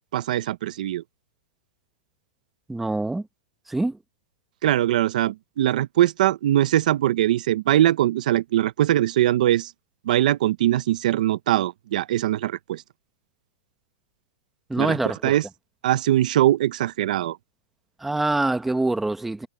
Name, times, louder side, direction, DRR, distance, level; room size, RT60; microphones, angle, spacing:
voice 1, 0.1-1.0 4.6-9.7 10.1-12.8 14.8-15.0 15.2-15.4 15.8-17.4, right 13 dB, 65° right, 0.7 m, -21 dB
voice 2, 2.7-3.3 3.7-4.0 14.7-15.3 18.0-19.5, right 2 dB, 5° right, 1.1 m, -25 dB
supercardioid pair, 170°, 5 cm